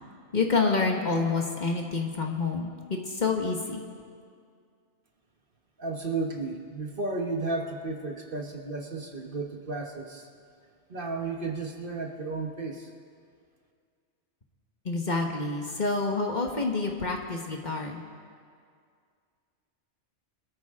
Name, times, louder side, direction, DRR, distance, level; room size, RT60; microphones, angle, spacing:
voice 1, 0.3-3.8 14.8-18.0, left 3 dB, 40° left, 1 dB, 1.5 m, -28 dB
voice 2, 5.8-10.3 10.9-12.9, right 3 dB, 50° right, 2 dB, 1.4 m, -33 dB
24.5 x 13.5 x 3.7 m, 2.2 s
omnidirectional pair, 1.2 m